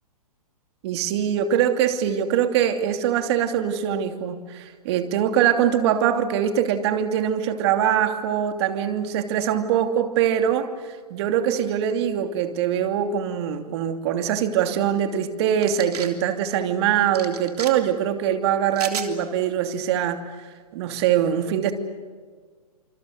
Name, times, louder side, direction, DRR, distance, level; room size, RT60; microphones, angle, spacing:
voice 1, 0.8-20.2 20.7-21.7, right 9 dB, 45° right, 7 dB, 2.8 m, -23 dB
sound 1, 15.6-16.1 17.1-17.7 18.7-19.1, right 7 dB, 75° right, 3.3 m, -33 dB
27.0 x 27.0 x 6.6 m, 1.5 s
hypercardioid pair, 145°, 20 cm